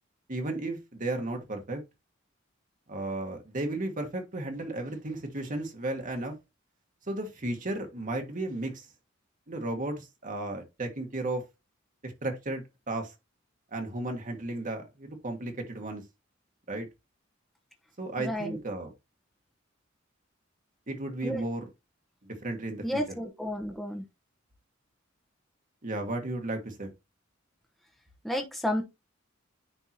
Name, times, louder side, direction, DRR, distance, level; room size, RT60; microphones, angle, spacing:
voice 1, 0.3-1.8 2.9-6.3 7.1-8.9 9.5-11.4 12.0-13.1 13.7-16.0 16.7-16.9 18.0-18.9 20.9-21.6 22.2-23.0 25.8-26.9, right 2 dB, 40° right, 1.4 m, -34 dB
voice 2, 18.2-18.6 21.2-21.4 22.8-24.0 28.2-28.8, equal, ahead, 0.9 m, -31 dB
10.0 x 3.6 x 2.8 m
head